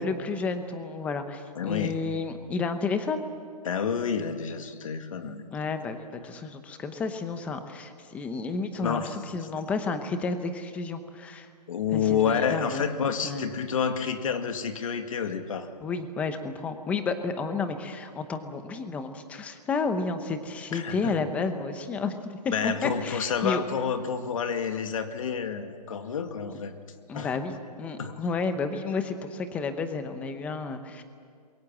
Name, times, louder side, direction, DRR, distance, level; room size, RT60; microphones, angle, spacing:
voice 1, 0.0-3.3 5.5-11.5 11.9-12.9 13.2-13.5 15.8-23.6 27.1-31.0, left 4 dB, 5° left, 9 dB, 0.8 m, -31 dB
voice 2, 1.6-2.0 3.6-5.4 8.8-9.2 11.7-15.7 20.7-21.2 22.5-26.7 27.1-27.3 28.0-28.2, left 7 dB, 55° left, 7 dB, 2.1 m, -29 dB
27.5 x 22.5 x 7.4 m, 2.2 s
hypercardioid pair, 165°, 21 cm